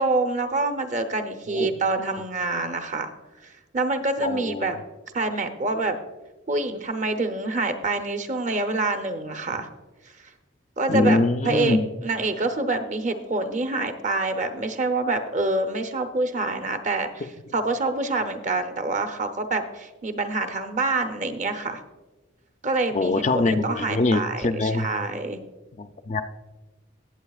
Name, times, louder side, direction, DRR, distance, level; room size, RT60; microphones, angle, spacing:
voice 1, 0.0-3.1 3.4-4.8 5.1-6.0 6.5-9.7 10.8-11.2 11.4-11.8 12.0-17.3 17.5-21.8 22.6-25.4, right 3 dB, 35° right, 6 dB, 0.7 m, -26 dB
voice 2, 4.2-4.7 10.9-11.9 22.9-24.9 25.8-26.2, left 2 dB, 35° left, 8 dB, 0.4 m, -23 dB
19.5 x 7.6 x 2.4 m, 1.2 s
head